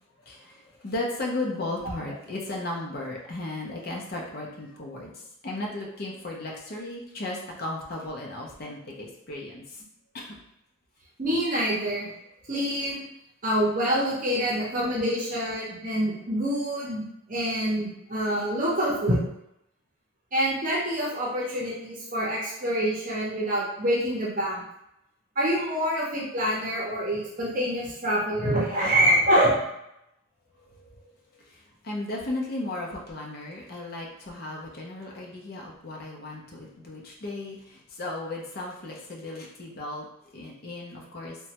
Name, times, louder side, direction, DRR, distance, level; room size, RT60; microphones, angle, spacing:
voice 1, 0.2-9.8 10.1-10.4 30.7-31.0 31.3-40.1 40.3-41.4, left 2 dB, 50° left, -2 dB, 0.6 m, -35 dB
voice 2, 11.2-12.1 12.5-13.0 13.4-19.2 20.3-24.6 25.4-29.5, equal, 40° right, -5 dB, 0.7 m, -26 dB
3.1 x 2.2 x 2.8 m, 0.82 s
head